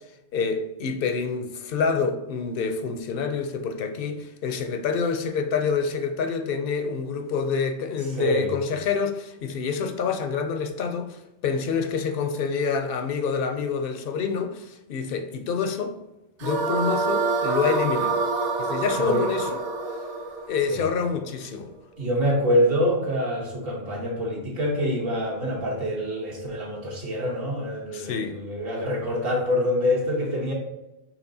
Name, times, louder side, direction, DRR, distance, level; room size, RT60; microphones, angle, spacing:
voice 1, 0.3-16.0 16.4-18.2 18.6-19.5 20.5-21.7 27.9-28.4, left 5 dB, 60° left, 0.7 m, -27 dB
voice 2, 8.2-8.5 19.0-19.3 20.7-20.9 22.0-30.5, equal, 55° right, 1.3 m, -25 dB
sound 1, 16.4-21.6, right 3 dB, 75° right, 1.0 m, -27 dB
5.9 x 3.2 x 2.7 m
omnidirectional pair, 1.2 m